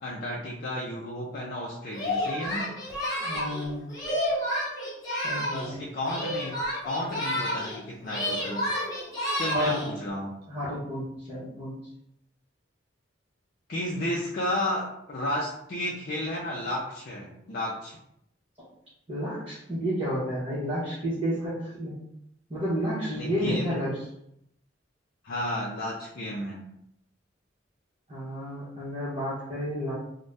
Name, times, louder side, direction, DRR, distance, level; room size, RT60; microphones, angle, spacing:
voice 1, 0.0-2.7 5.5-6.5 6.8-8.7 9.4-10.4 13.7-18.0 23.2-23.8 25.2-26.6, left 1 dB, 50° left, -4 dB, 0.5 m, -32 dB
Singing, 1.9-5.7 6.0-9.9, left 1 dB, 20° left, 0.9 m, -30 dB
voice 2, 3.2-3.9 5.2-5.8 9.5-9.8 10.5-11.8 19.1-21.9 22.5-24.0 28.1-29.9, equal, 30° right, -12 dB, 1.0 m, -31 dB
2.6 x 2.2 x 3.3 m, 0.76 s
head